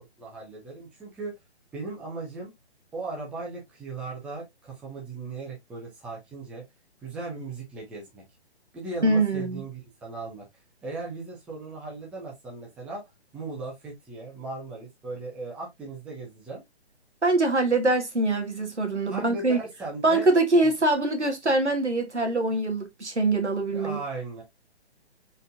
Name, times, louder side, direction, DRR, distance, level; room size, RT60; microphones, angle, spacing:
voice 1, 0.2-1.3 1.7-2.5 2.9-6.6 7.0-8.2 8.7-10.5 10.8-13.0 13.3-16.6 19.1-20.3 23.7-24.4, right 3 dB, 5° right, 0.6 m, -37 dB
voice 2, 9.0-9.6 17.2-19.6 20.0-24.0, right 2 dB, 90° right, 1.5 m, -23 dB
4.3 x 3.8 x 2.4 m
figure-of-eight pair, 135°, 33 cm